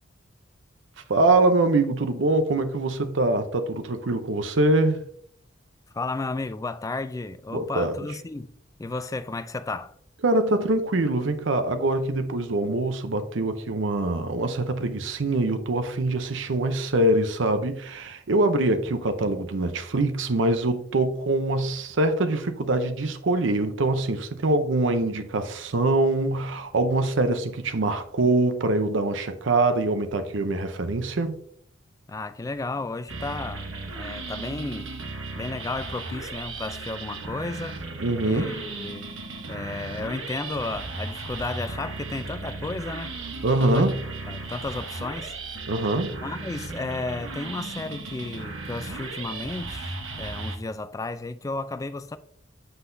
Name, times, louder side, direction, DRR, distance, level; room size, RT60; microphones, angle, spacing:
voice 1, 1.1-5.0 7.5-8.0 10.2-31.4 38.0-38.6 43.4-43.9 45.7-46.1, right 2 dB, 65° right, 0.6 m, -24 dB
voice 2, 5.9-8.5 8.8-9.9 32.1-33.7 34.0-35.0 35.3-39.1 39.5-43.2 43.6-43.9 44.3-45.4 46.2-52.2, left 3 dB, 15° left, 0.3 m, -33 dB
sound 1, 33.1-50.6, right 3 dB, 85° right, 1.1 m, -36 dB
8.0 x 5.7 x 2.6 m
head